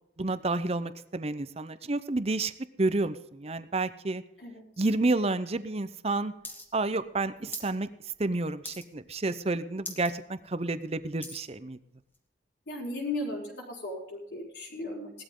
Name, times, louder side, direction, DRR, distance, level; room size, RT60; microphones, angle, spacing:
voice 1, 0.2-2.5 2.8-4.2 4.8-6.3 6.7-7.9 8.2-11.8, right 2 dB, 35° right, 13 dB, 0.7 m, -30 dB
sound 1, 6.4-6.7 6.9-7.7 8.1-8.3 8.6-9.1 9.5-9.6 9.8-10.1 10.6-11.5 12.1-12.2, left 2 dB, 10° left, 1.8 m, -41 dB
voice 2, 12.7-15.1, left 2 dB, 70° left, -3 dB, 4.6 m, -36 dB
18.0 x 13.0 x 3.8 m, 0.81 s
head